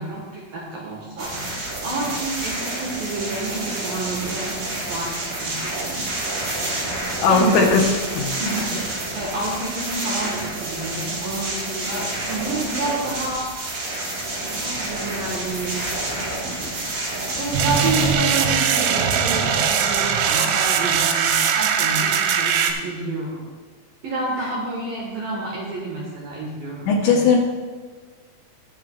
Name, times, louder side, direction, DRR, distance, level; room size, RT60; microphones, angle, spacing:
voice 1, 0.0-4.6 4.9-6.0 6.3-6.6 7.3-7.6 8.4-13.5 14.4-15.8 16.6-16.7 17.4-23.4 24.0-27.2, right 2 dB, 65° right, -4 dB, 2.4 m, -29 dB
sound 1, 1.2-18.1, right 2 dB, 50° right, 2.8 m, -29 dB
voice 2, 7.2-7.8 8.1-8.4 26.9-27.4, left 4 dB, 75° left, -1 dB, 2.8 m, -17 dB
sound 2, 17.5-22.7, right 7 dB, 80° right, 3.0 m, -20 dB
20.5 x 7.9 x 2.4 m, 1.5 s
omnidirectional pair, 5.8 m